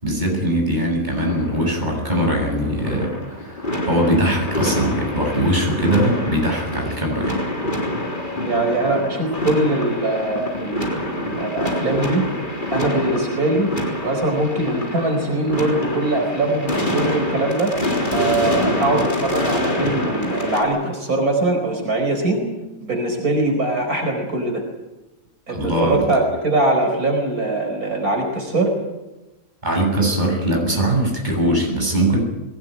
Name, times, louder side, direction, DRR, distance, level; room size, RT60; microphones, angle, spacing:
voice 1, 0.0-3.6 3.8-7.4 25.5-26.0 29.6-32.2, right 1 dB, 30° right, 0 dB, 7.6 m, -21 dB
sound 1, 1.2-20.6, left 1 dB, 35° left, 3.9 m, -26 dB
voice 2, 8.4-10.9 11.2-12.2 12.7-13.7 14.0-17.7 18.1-22.4 22.8-24.6 25.5-28.7, right 2 dB, 85° right, 3 dB, 5.2 m, -22 dB
22.0 x 19.0 x 9.6 m, 1.0 s
omnidirectional pair, 1.5 m